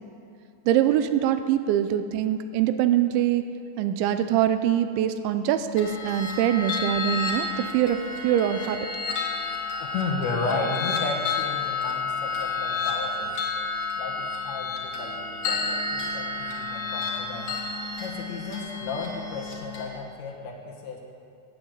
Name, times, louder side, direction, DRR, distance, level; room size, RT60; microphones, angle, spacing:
voice 1, 0.7-3.4 3.8-8.8, right 10 dB, 85° right, 10 dB, 2.9 m, -23 dB
sound 1, 5.8-19.9, left 4 dB, 50° left, 2.5 m, -31 dB
voice 2, 9.8-13.4 14.0-17.6 18.0-21.0, left 4 dB, 75° left, 0 dB, 3.6 m, -33 dB
17.5 x 8.8 x 8.0 m, 2.5 s
omnidirectional pair, 5.4 m